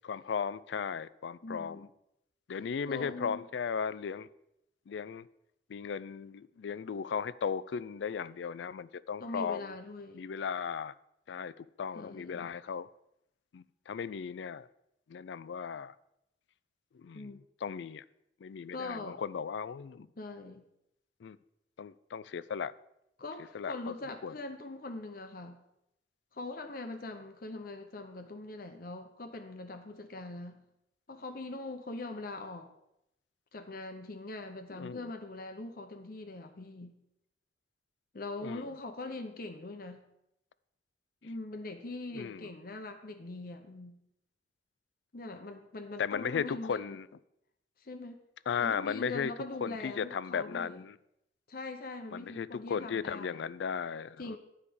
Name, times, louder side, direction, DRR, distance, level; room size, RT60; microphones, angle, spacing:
voice 1, 0.0-1.9 2.5-4.3 4.9-5.3 5.7-9.7 10.1-10.9 11.3-12.9 13.5-14.7 15.1-15.9 16.9-18.0 18.4-20.1 21.2-21.4 21.8-22.7 23.5-23.8 24.2-24.3 34.7-35.1 38.4-38.6 42.1-42.5 46.0-47.1 48.5-49.3 49.6-51.0 52.1-54.4, left 6 dB, 75° left, 18 dB, 0.4 m, -36 dB
voice 2, 1.4-1.9 2.9-3.4 9.2-10.2 12.0-12.5 17.1-17.4 18.7-19.2 20.2-20.6 23.2-25.6 26.3-30.6 31.1-32.7 33.5-37.0 38.1-40.0 41.2-44.0 45.1-47.0 47.8-48.2 48.6-50.8 51.5-53.4 54.2-54.4, left 2 dB, 50° left, 6 dB, 0.8 m, -42 dB
10.0 x 4.9 x 7.0 m, 0.82 s
head